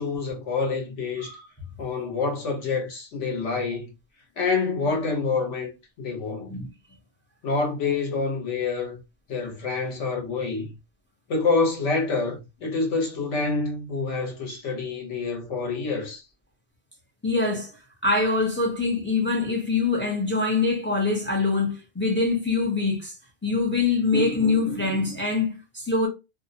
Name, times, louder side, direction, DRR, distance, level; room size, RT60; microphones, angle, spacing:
voice 1, 0.0-1.4 1.8-3.9 4.4-5.7 6.0-6.5 7.4-9.0 9.3-10.7 11.3-16.2, left 4 dB, 65° left, 1.1 m, -27 dB
voice 2, 17.2-17.7 18.0-23.2 23.4-26.1, left 3 dB, 15° left, 0.4 m, -24 dB
2.6 x 2.0 x 2.6 m
omnidirectional pair, 1.3 m